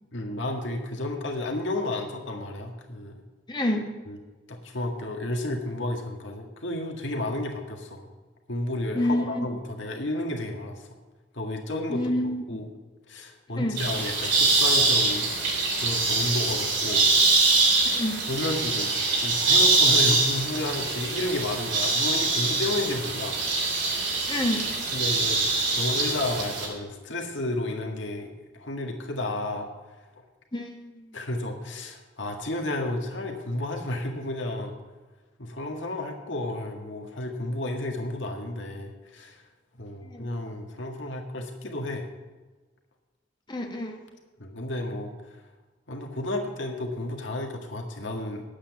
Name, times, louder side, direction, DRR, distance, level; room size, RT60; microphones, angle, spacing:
voice 1, 0.1-3.2 4.1-4.2 4.5-8.1 8.5-10.9 11.3-12.1 12.5-12.7 13.1-15.3 15.8-17.1 17.7-17.8 18.3-23.4 24.9-25.4 25.7-29.7 31.1-34.7 35.4-39.4 39.8-42.1 44.4-45.4 45.9-48.4, left 1 dB, 75° left, 1 dB, 1.8 m, -32 dB
voice 2, 3.5-3.8 8.9-9.5 11.9-12.6 13.6-13.8 17.8-18.2 24.3-24.6 30.5-31.2 40.0-40.3 43.5-44.0, left 1 dB, 25° left, 2 dB, 1.4 m, -28 dB
sound 1, 13.8-26.7, right 3 dB, 70° right, 3.8 m, -24 dB
10.0 x 8.7 x 7.2 m, 1.3 s
head